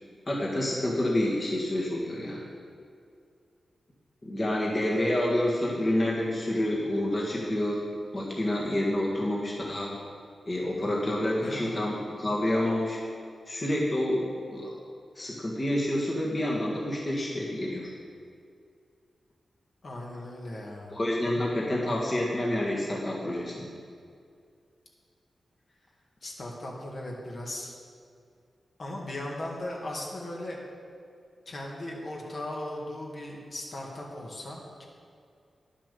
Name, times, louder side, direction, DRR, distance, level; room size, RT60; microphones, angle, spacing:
voice 1, 0.3-2.4 4.2-7.9 8.1-10.0 10.5-13.0 13.5-14.7 15.2-17.9 20.9-23.7, left 1 dB, 30° left, -4 dB, 1.7 m, -28 dB
voice 2, 11.4-11.7 19.8-21.0 26.2-27.7 28.8-30.6 31.5-34.9, left 1 dB, 45° left, -2 dB, 1.8 m, -37 dB
10.5 x 7.4 x 6.9 m, 2.3 s
wide cardioid pair, 145°, 0 cm